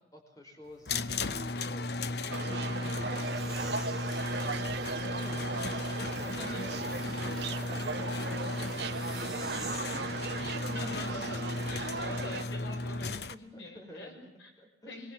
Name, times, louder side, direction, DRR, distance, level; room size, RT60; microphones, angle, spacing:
voice 1, 0.1-1.0 1.2-4.2 5.1-5.4 5.8-10.5 12.1-12.3 13.2-14.3 14.6-14.9, equal, 20° left, 2 dB, 4.9 m, -50 dB
sound 1, 0.9-13.3, left 2 dB, 60° left, 0.8 m, -35 dB
sound 2, 2.3-12.4, right 4 dB, 65° right, 1.3 m, -37 dB
sound 3, 3.2-10.0, right 2 dB, ahead, 3.0 m, -49 dB
voice 2, 5.0-5.5 5.8-6.7 7.6-7.8 10.4-14.1 14.4-14.5 14.8-15.1, left 1 dB, 85° left, 2 dB, 6.3 m, -44 dB
25.0 x 22.5 x 7.5 m, 0.79 s
head